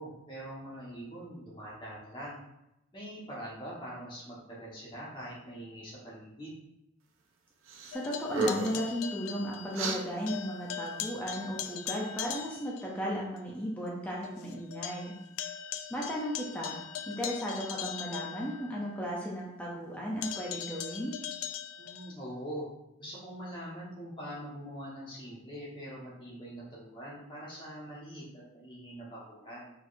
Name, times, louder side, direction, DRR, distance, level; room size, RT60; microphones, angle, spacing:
voice 1, 0.0-2.4 2.9-6.6 21.8-22.7 23.0-29.7, equal, 20° left, -7 dB, 1.4 m, -43 dB
sound 1, 7.7-7.9 8.2-8.9 9.7-10.0, right 3 dB, 65° right, 0.5 m, -32 dB
sound 2, 7.9-10.0 10.3-12.9 13.4-13.5 13.9-14.0 14.2-19.0 20.2-22.1, left 9 dB, 75° left, 0.4 m, -40 dB
voice 2, 7.9-15.1 15.9-16.8 17.1-21.1, equal, 5° left, -4 dB, 0.5 m, -35 dB
4.6 x 4.1 x 2.6 m, 0.90 s
head